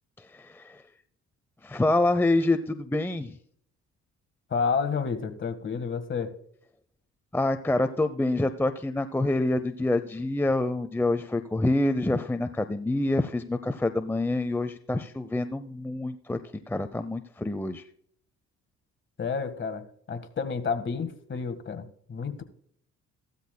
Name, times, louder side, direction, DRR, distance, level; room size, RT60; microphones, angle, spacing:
voice 1, 0.3-0.8 1.6-3.4 7.3-16.4 16.7-17.8, left 2 dB, 5° left, 0.6 m, -26 dB
voice 2, 4.5-6.4 19.2-22.4, left 5 dB, 40° left, 1.6 m, -30 dB
15.5 x 13.0 x 2.2 m
cardioid pair, 90°, 30 cm